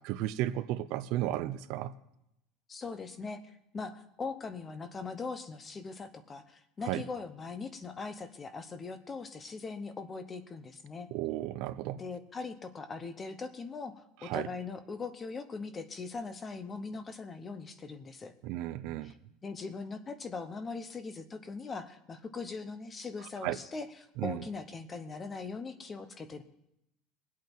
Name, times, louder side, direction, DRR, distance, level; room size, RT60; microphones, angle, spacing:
voice 1, 0.0-1.9 6.9-7.0 11.1-12.0 14.2-14.5 18.4-19.1 23.4-23.6 24.2-24.4, right 14 dB, 55° right, 0.5 m, -34 dB
voice 2, 2.7-3.4 3.7-11.1 11.9-18.3 19.0-19.2 19.4-26.4, left 4 dB, 15° left, 0.8 m, -40 dB
22.5 x 8.4 x 4.5 m
cardioid pair, 175°, 0 cm